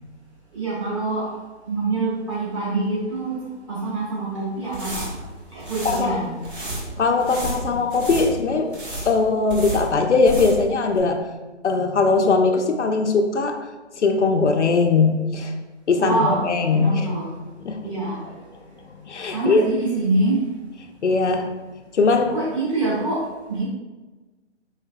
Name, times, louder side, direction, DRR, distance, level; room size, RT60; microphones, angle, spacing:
voice 1, 0.5-1.3 1.6-3.4 3.7-5.1 5.5-6.3 15.9-17.3 17.8-18.2 19.3-20.4 22.3-23.2 23.5-23.6, right 2 dB, 25° right, -9 dB, 1.5 m, -25 dB
sound 1, 4.6-10.7 11.0-11.1, right 1 dB, 45° right, 1.2 m, -32 dB
voice 2, 5.8-6.2 7.0-8.7 9.1-11.2 11.6-13.6 14.0-15.5 15.9-17.1 17.6-17.9 19.0-19.7 21.0-21.5 21.9-22.3, left 4 dB, 70° left, 4 dB, 0.5 m, -20 dB
4.8 x 3.2 x 2.2 m, 1.2 s
figure-of-eight pair, 150°, 37 cm